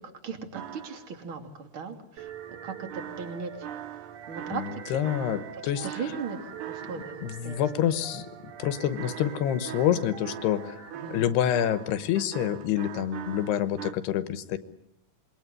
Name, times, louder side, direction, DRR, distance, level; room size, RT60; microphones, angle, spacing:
voice 1, 0.2-2.3 2.6-3.7 4.3-4.6 5.8-7.6 10.9-11.2, right 5 dB, 35° right, 6 dB, 3.1 m, -37 dB
sound 1, 0.5-1.3 2.9-7.3 9.0-13.9, right 11 dB, 80° right, 3.5 m, -41 dB
sound 2, 2.2-10.9, right 7 dB, 55° right, 3.1 m, -44 dB
voice 2, 4.5-6.1 7.2-8.3 8.6-10.8 11.1-14.6, left 10 dB, 80° left, 12 dB, 3.2 m, -27 dB
27.0 x 22.0 x 9.8 m, 0.76 s
omnidirectional pair, 4.7 m